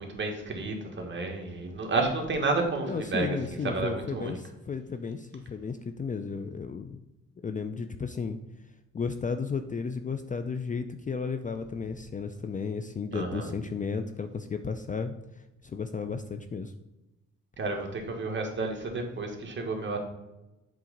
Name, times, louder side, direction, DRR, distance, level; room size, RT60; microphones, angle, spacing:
voice 1, 0.0-4.4 13.1-13.5 17.6-20.0, right 3 dB, 40° right, 2 dB, 1.7 m, -31 dB
voice 2, 2.9-7.0 7.4-8.4 8.9-15.2 15.6-16.7, left 5 dB, 25° left, 8 dB, 0.5 m, -33 dB
7.6 x 3.7 x 5.1 m, 0.99 s
cardioid pair, 90°, 30 cm